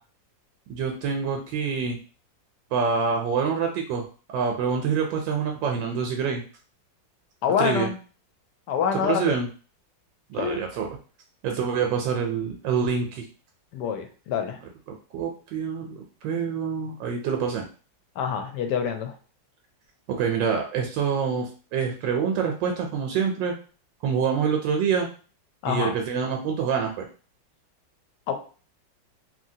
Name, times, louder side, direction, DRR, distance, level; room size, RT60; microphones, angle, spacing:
voice 1, 0.7-2.0 2.7-4.1 4.3-6.4 7.6-7.9 9.0-9.5 10.3-10.9 11.4-13.3 14.9-17.7 20.1-23.5 24.0-25.1 25.7-27.1, right 6 dB, 80° right, 2 dB, 1.3 m, -26 dB
voice 2, 7.4-8.0 8.7-9.4 10.4-10.6 13.7-14.6 18.2-19.1 25.6-26.0 28.3-28.4, left 7 dB, 75° left, 6 dB, 1.1 m, -26 dB
2.9 x 2.8 x 2.6 m, 0.38 s
omnidirectional pair, 2.0 m